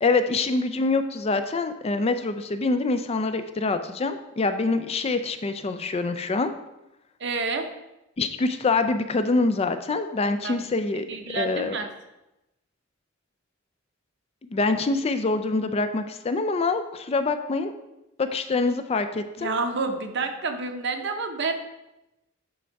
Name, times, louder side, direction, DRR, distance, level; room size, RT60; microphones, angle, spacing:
voice 1, 0.0-6.5 8.2-11.0 11.3-11.8 14.4-17.7 18.2-19.5, left 3 dB, 30° left, 9 dB, 0.4 m, -25 dB
voice 2, 7.2-7.7 10.4-10.7 11.1-11.9 19.4-21.5, right 3 dB, 60° right, 6 dB, 0.8 m, -29 dB
8.5 x 3.5 x 4.6 m, 0.93 s
head